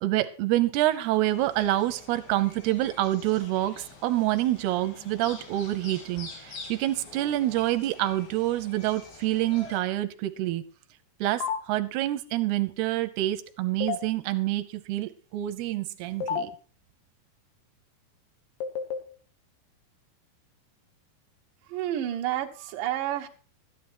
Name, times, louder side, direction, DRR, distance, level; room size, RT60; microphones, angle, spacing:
voice 1, 0.0-10.6 11.2-16.5, right 15 dB, 90° right, 11 dB, 2.8 m, -27 dB
sound 1, 1.3-9.8, left 3 dB, 70° left, 4.7 m, -46 dB
sound 2, 11.4-11.6 13.8-14.0 16.2-16.4 18.6-19.0, left 7 dB, 90° left, 3.7 m, -28 dB
voice 2, 21.7-23.3, right 12 dB, 65° right, 3 dB, 2.7 m, -30 dB
13.5 x 10.0 x 4.5 m, 0.38 s
omnidirectional pair, 4.5 m